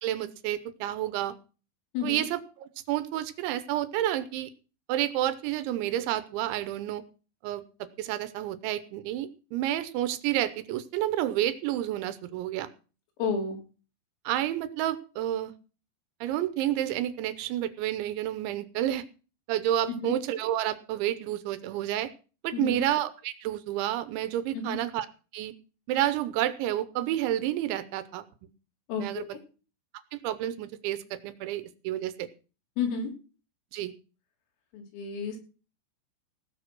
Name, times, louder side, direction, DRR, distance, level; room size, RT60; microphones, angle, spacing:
voice 1, 0.0-1.3 2.0-4.5 4.9-7.0 7.4-12.7 14.3-15.5 16.2-19.0 19.5-22.1 22.4-25.1 25.3-25.5 25.9-28.2 29.0-29.3 30.1-32.3 33.7-33.9, right 12 dB, 75° right, 13 dB, 3.0 m, -30 dB
voice 2, 1.9-2.3 13.2-13.6 20.0-20.2 22.5-22.8 24.5-24.8 28.9-29.4 32.8-33.1 34.7-35.4, left 5 dB, 85° left, 1 dB, 5.9 m, -31 dB
17.5 x 6.9 x 6.1 m, 0.35 s
omnidirectional pair, 5.8 m